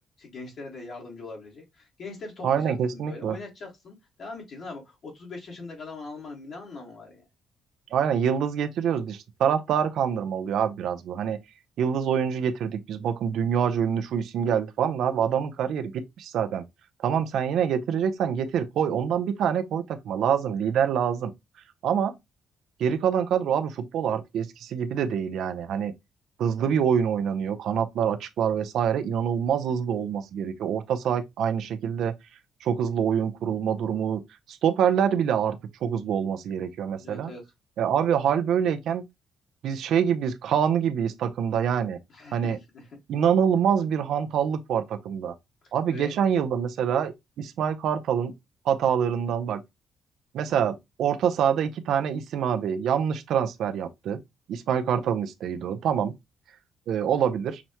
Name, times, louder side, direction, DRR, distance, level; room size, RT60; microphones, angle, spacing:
voice 1, 0.2-7.2 37.0-37.4 42.1-42.9 45.9-46.1, left 3 dB, 60° left, 1.4 m, -41 dB
voice 2, 2.4-3.4 7.9-11.4 11.8-16.6 17.0-21.3 21.8-22.1 22.8-25.9 26.4-32.1 32.6-34.2 34.5-37.3 37.8-39.0 39.6-42.0 42.3-42.6 43.1-45.3 45.7-47.1 47.4-48.3 48.6-49.6 50.3-54.2 54.5-56.1 56.9-57.6, right 8 dB, 75° right, 0.5 m, -25 dB
5.9 x 2.1 x 2.8 m
cardioid pair, 90°, 0 cm